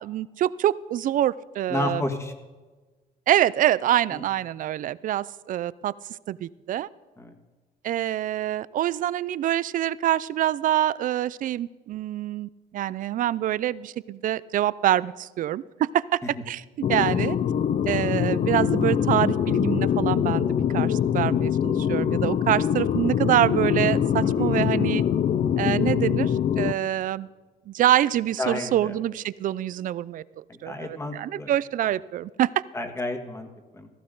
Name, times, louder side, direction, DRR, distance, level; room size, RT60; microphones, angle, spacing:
voice 1, 0.0-2.0 3.3-5.9 6.3-6.9 7.8-16.2 16.5-16.6 16.9-17.4 17.9-25.0 25.6-27.3 27.7-32.5, right 12 dB, 50° right, 19 dB, 0.4 m, -25 dB
voice 2, 1.7-2.3 4.1-4.2 7.2-7.3 24.2-24.6 28.4-28.9 30.5-31.5 32.7-33.5 33.7-33.9, left 2 dB, 15° left, 5 dB, 1.8 m, -31 dB
sound 1, 16.8-26.7, left 9 dB, 45° left, 0.6 m, -23 dB
16.0 x 14.0 x 3.9 m, 1.3 s
cardioid pair, 110°, 17 cm